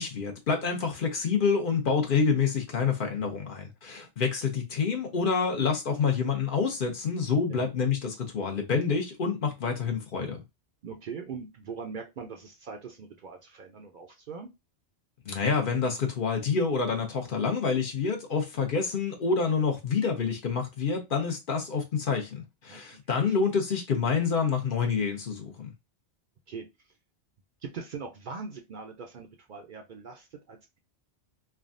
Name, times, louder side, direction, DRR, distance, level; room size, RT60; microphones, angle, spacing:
voice 1, 0.0-10.4 15.3-25.7, left 5 dB, 55° left, 0.8 m, -27 dB
voice 2, 10.8-14.5 22.7-23.0 23.3-23.4 26.5-26.7 27.6-30.8, right 5 dB, 60° right, 0.6 m, -41 dB
3.4 x 2.2 x 2.5 m
omnidirectional pair, 1.1 m